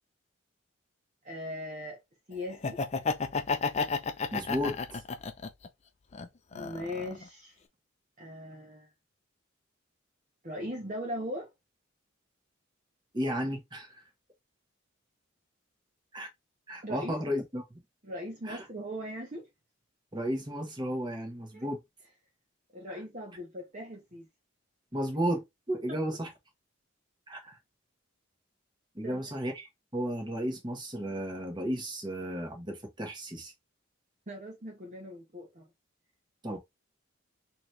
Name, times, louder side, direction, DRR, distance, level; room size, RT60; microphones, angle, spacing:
voice 1, 1.2-2.0 2.3-2.8 6.5-7.5 8.2-8.9 10.4-11.5 16.8-17.1 18.0-19.5 21.5-21.7 22.7-24.3 29.0-29.2 34.3-35.7, equal, 35° right, 1.0 m, -39 dB
Laughter, 2.5-5.7 6.1-7.2, left 4 dB, 30° left, 0.4 m, -32 dB
voice 2, 4.3-5.0 13.1-14.0 16.1-16.3 16.7-17.6 18.4-18.6 20.1-21.8 22.9-23.0 24.9-26.3 27.3-27.6 28.9-33.5 36.4-36.6, equal, 20° right, 1.3 m, -34 dB
4.0 x 3.0 x 3.1 m
head